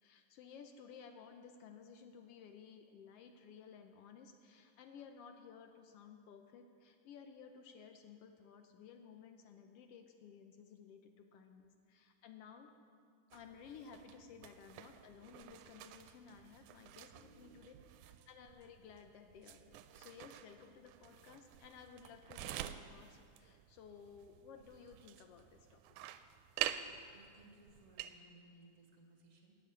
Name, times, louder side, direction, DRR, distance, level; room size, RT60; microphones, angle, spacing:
voice 1, 0.0-12.7 13.3-17.7 18.0-25.8, left 6 dB, 80° left, 6 dB, 1.3 m, -56 dB
sound 1, 13.3-28.2, right 12 dB, 85° right, 2.0 m, -48 dB
voice 2, 17.1-18.0 26.7-29.6, right 2 dB, 30° right, 1 dB, 1.7 m, -63 dB
13.5 x 7.1 x 9.4 m, 2.2 s
omnidirectional pair, 3.5 m